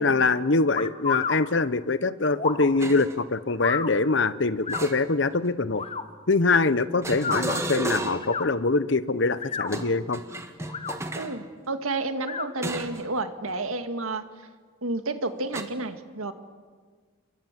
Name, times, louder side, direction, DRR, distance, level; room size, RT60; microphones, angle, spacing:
voice 1, 0.0-5.8 6.3-10.2, left 3 dB, 55° left, 15 dB, 0.9 m, -24 dB
sound 1, 0.7-1.4 2.4-2.7 3.6-3.9 4.6-4.8 5.7-6.0 7.1-7.4 8.2-8.5 9.3-9.7 10.6-11.0 12.2-12.5, left 5 dB, 30° left, 1.1 m, -30 dB
sound 2, 2.8-3.2 4.7-5.5 7.0-8.4 9.6-11.4 12.6-13.1 13.5-13.7 15.5-15.6, right 1 dB, 15° right, 1.5 m, -33 dB
voice 2, 11.2-14.2 14.8-16.3, right 2 dB, 80° right, 8 dB, 1.9 m, -30 dB
29.0 x 23.0 x 7.5 m, 1.5 s
head